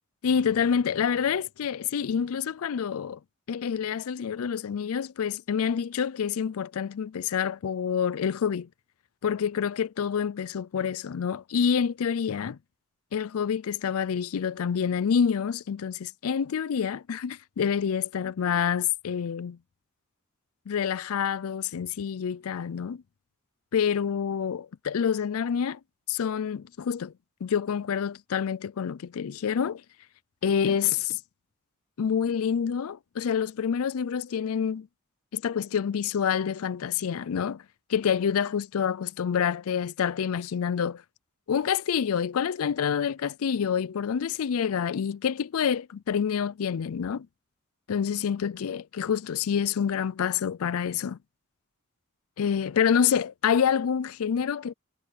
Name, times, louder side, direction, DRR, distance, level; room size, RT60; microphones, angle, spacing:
voice 1, 0.2-3.2 3.5-8.7 9.2-12.6 13.1-19.6 20.7-23.0 23.7-25.8 26.1-27.1 27.4-29.8 30.4-31.2 32.0-34.9 35.3-37.6 37.9-41.0 41.5-47.3 47.9-51.2 52.4-54.7, left 7 dB, 70° left, 0.4 m, -27 dB
head